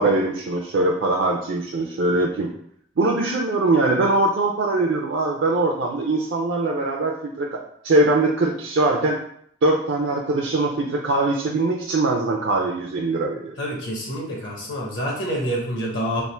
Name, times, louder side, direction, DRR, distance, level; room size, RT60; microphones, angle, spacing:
voice 1, 0.0-2.5 3.0-7.6 7.8-9.1 9.6-13.5, right 2 dB, 60° right, -1 dB, 0.4 m, -22 dB
voice 2, 13.6-16.2, equal, 60° left, -2 dB, 0.9 m, -27 dB
3.5 x 2.5 x 4.2 m, 0.67 s
head